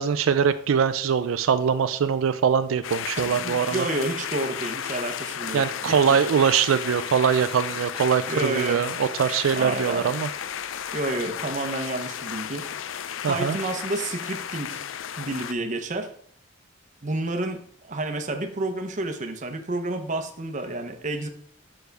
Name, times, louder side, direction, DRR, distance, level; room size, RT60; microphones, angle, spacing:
voice 1, 0.0-3.8 5.5-10.3 13.2-13.6, right 7 dB, 85° right, 11 dB, 0.4 m, -22 dB
sound 1, 2.8-15.5, left 9 dB, 75° left, 0.4 m, -33 dB
voice 2, 3.2-6.2 8.3-8.9 9.5-10.1 10.9-12.7 13.2-14.8 15.2-16.1 17.0-21.3, right 2 dB, 40° right, 6 dB, 0.8 m, -30 dB
6.9 x 6.4 x 3.4 m, 0.64 s
head